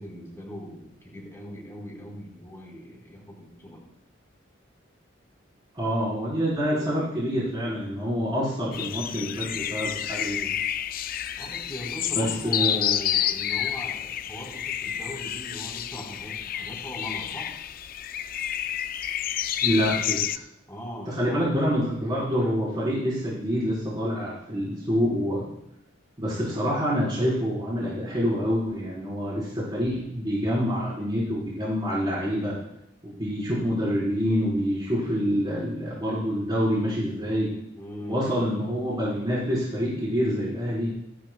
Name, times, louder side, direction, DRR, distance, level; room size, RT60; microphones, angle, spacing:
voice 1, 0.0-3.8 11.4-17.5 20.7-21.6 37.7-38.6, equal, 15° left, -3 dB, 4.3 m, -40 dB
voice 2, 5.7-10.5 12.1-13.0 19.6-20.4 21.1-25.5 26.2-32.6 33.0-37.5 38.0-40.9, equal, 25° right, -8 dB, 4.2 m, -27 dB
sound 1, 8.7-20.4, left 10 dB, 45° left, 0.4 m, -29 dB
27.0 x 10.5 x 2.3 m, 0.80 s
head